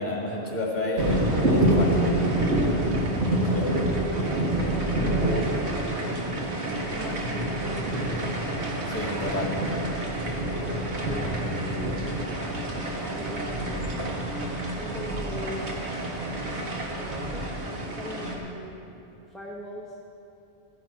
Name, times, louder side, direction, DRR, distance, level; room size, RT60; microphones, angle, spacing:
voice 1, 0.0-2.1 3.5-3.8 8.9-9.6, left 2 dB, 40° left, -2 dB, 2.2 m, -30 dB
sound 1, 1.0-18.4, right 1 dB, 75° right, 1.8 m, -27 dB
voice 2, 2.7-3.0 4.3-5.9 6.9-8.5 11.0-12.1 13.1-14.3 14.7-15.7 16.4-16.6 16.9-17.5 18.0-19.0 19.3-20.0, equal, ahead, -4 dB, 0.9 m, -41 dB
14.0 x 10.5 x 4.7 m, 2.7 s
omnidirectional pair, 1.1 m